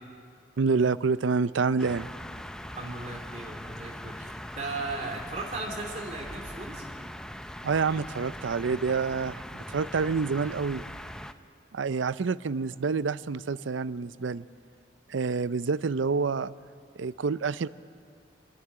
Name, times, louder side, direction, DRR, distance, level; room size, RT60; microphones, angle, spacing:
voice 1, 0.6-2.1 7.6-10.8 11.7-14.4 15.1-16.5 17.0-17.7, right 4 dB, 85° right, 16 dB, 0.5 m, -27 dB
sound 1, 1.8-11.3, left 1 dB, 5° left, 0.4 m, -41 dB
voice 2, 2.7-6.9, right 3 dB, 35° right, 1 dB, 3.1 m, -37 dB
26.5 x 11.5 x 10.0 m, 2.3 s
head